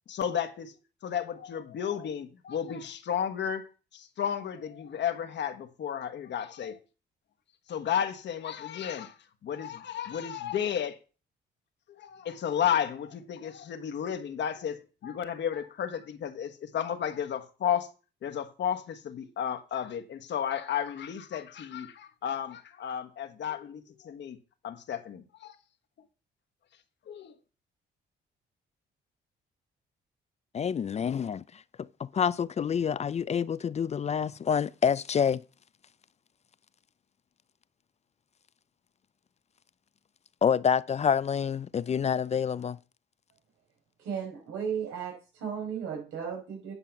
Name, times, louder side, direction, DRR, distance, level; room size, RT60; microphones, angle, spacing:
voice 1, 0.1-0.7 1.0-6.8 7.7-9.1 9.4-11.0 12.0-17.9 18.2-24.4 24.6-25.5 27.1-27.3, left 9 dB, 65° left, 1.3 m, -33 dB
voice 2, 30.5-35.4 40.4-42.8, left 7 dB, 35° left, 0.4 m, -28 dB
voice 3, 44.0-46.7, right 7 dB, 90° right, 4.9 m, -35 dB
10.0 x 5.6 x 5.8 m
cardioid pair, 90°, 20 cm